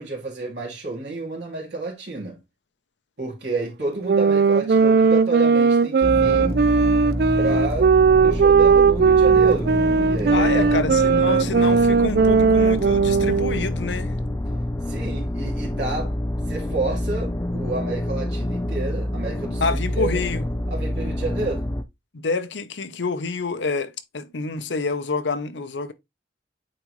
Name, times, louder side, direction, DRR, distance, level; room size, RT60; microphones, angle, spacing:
voice 1, 0.0-2.4 3.2-6.6 7.4-7.9 8.2-9.7 10.1-10.8 14.9-16.1 16.5-20.2 20.7-21.7, right 3 dB, 80° right, 2.6 m, -30 dB
sound 1, 4.0-13.7, right 5 dB, 60° right, 0.3 m, -18 dB
sound 2, 6.0-21.8, left 1 dB, 15° left, 0.5 m, -27 dB
voice 2, 10.3-14.1 19.6-20.4 22.1-25.9, left 4 dB, 85° left, 0.8 m, -27 dB
8.7 x 3.9 x 3.1 m
head